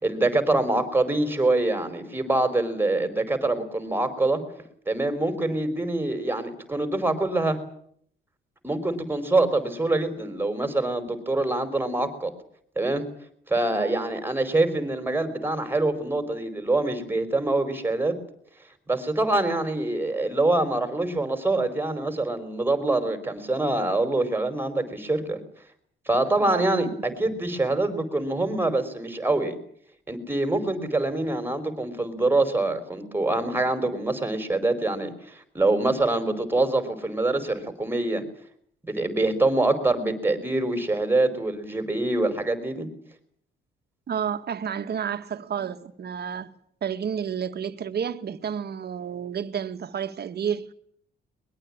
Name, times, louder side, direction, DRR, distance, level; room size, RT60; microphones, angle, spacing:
voice 1, 0.0-4.4 4.9-7.6 8.6-12.3 12.7-13.0 13.5-18.2 18.9-25.4 26.1-29.6 30.1-38.2 38.8-42.9, right 2 dB, 10° right, 4.9 m, -25 dB
voice 2, 44.1-46.5 46.8-50.7, right 8 dB, 55° right, 2.1 m, -30 dB
22.5 x 22.0 x 8.9 m
cardioid pair, 90°, 20 cm